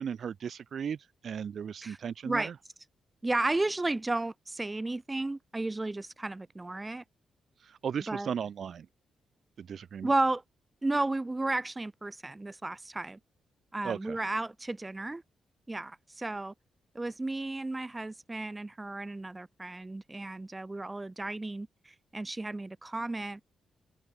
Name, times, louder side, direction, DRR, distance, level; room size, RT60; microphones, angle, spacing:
voice 1, 0.0-2.5 7.6-8.9 9.6-10.1 13.8-14.2, right 7 dB, 60° right, 3.1 m, -36 dB
voice 2, 3.2-7.0 8.1-8.3 10.0-10.4 10.8-13.2 13.7-15.2 15.7-16.5 16.9-23.4, right 2 dB, 20° right, 0.8 m, -33 dB
open air
cardioid pair, 75°, 0 cm